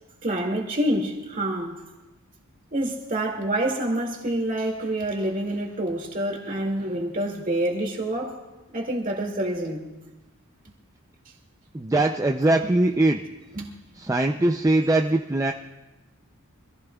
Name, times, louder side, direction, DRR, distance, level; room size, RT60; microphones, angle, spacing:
voice 1, 0.2-1.8 2.7-8.3 8.7-9.9 13.5-13.7, right 1 dB, 40° right, 1 dB, 2.2 m, -27 dB
voice 2, 11.7-13.2 14.0-15.5, right 2 dB, 15° right, 3 dB, 0.4 m, -21 dB
25.0 x 15.0 x 2.3 m, 1.1 s
head